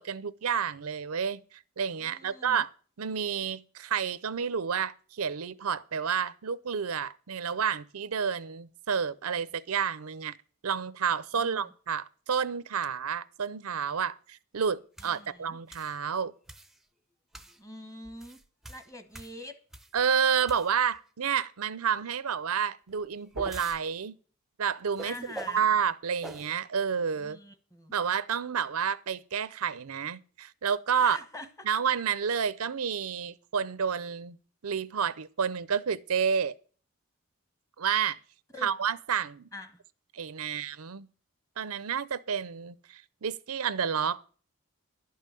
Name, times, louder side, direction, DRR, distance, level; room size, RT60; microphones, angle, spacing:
voice 1, 0.0-2.7 3.0-10.4 10.6-16.3 19.9-24.1 24.6-25.2 25.5-27.4 27.9-31.2 31.6-34.4 34.6-36.5 37.8-38.2 38.6-39.5 40.1-41.1 41.6-44.2, right 7 dB, 80° right, 0.6 m, -30 dB
voice 2, 2.0-2.7 11.3-11.7 15.0-15.6 17.6-18.4 18.7-19.5 25.0-25.7 27.2-27.9 31.0-31.5 38.5-38.7 39.5-39.8, left 1 dB, 15° left, 1.2 m, -45 dB
sound 1, 15.0-15.2 15.7-16.0 16.5-16.8 17.3-17.6 18.1-20.0 20.4-21.0 22.9-23.8 25.0-25.7 26.2-26.5, right 1 dB, ahead, 0.6 m, -44 dB
11.5 x 5.6 x 9.0 m
head